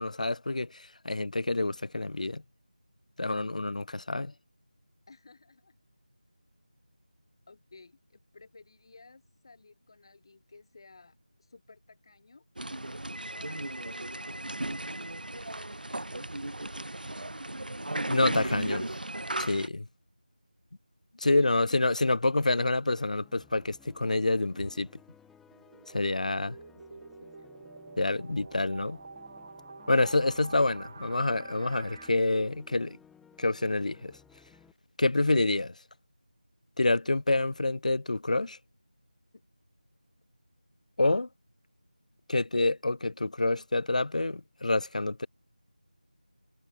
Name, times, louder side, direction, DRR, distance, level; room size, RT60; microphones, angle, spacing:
voice 1, 0.0-2.4 3.2-4.3 18.1-18.9 19.4-19.9 21.2-24.9 25.9-26.5 28.0-29.0 29.9-33.0 33.4-34.2 35.0-35.7 36.8-38.6 41.0-41.3 42.3-45.3, left 2 dB, 55° left, 0.6 m, -27 dB
voice 2, 5.1-5.8 7.5-12.4 13.3-15.5 21.4-21.9 26.7-27.5, left 3 dB, 35° left, 1.7 m, -56 dB
sound 1, 12.6-19.7, right 1 dB, 85° right, 0.9 m, -35 dB
sound 2, 22.7-34.7, left 7 dB, 5° left, 3.8 m, -59 dB
sound 3, 25.5-32.1, right 4 dB, 25° right, 0.4 m, -48 dB
figure-of-eight pair, 170°, 5 cm